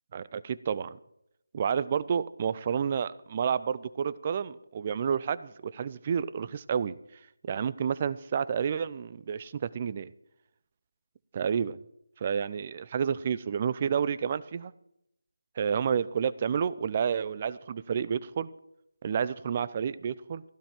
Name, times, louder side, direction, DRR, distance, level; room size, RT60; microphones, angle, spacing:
voice 1, 0.1-1.0 1.5-7.0 7.4-10.1 11.3-11.8 12.2-14.7 15.6-18.5 19.0-20.4, right 7 dB, 30° right, 16 dB, 0.6 m, -30 dB
15.5 x 12.5 x 4.5 m, 0.78 s
figure-of-eight pair, 160°, 0 cm